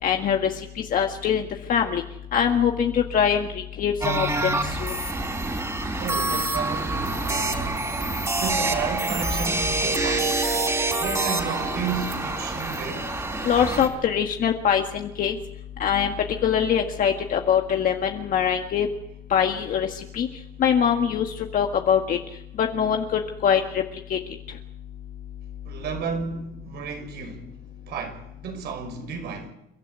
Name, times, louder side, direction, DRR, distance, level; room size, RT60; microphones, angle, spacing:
voice 1, 0.0-0.5 0.9-2.0 2.3-3.5 3.8-4.9 13.5-15.3 15.8-16.1 16.4-18.9 19.3-19.9 20.1-20.3 20.6-21.3 21.5-22.2 22.6-23.6 24.1-24.2, left 8 dB, 55° left, 1.8 m, -23 dB
sound 1, 4.0-13.9, right 2 dB, 15° right, 4.2 m, -26 dB
voice 2, 6.0-7.9 8.4-10.5 10.9-13.1 25.6-27.5 27.9-29.5, right 6 dB, 75° right, 6.1 m, -33 dB
29.5 x 13.0 x 8.4 m
cardioid pair, 110°, 17 cm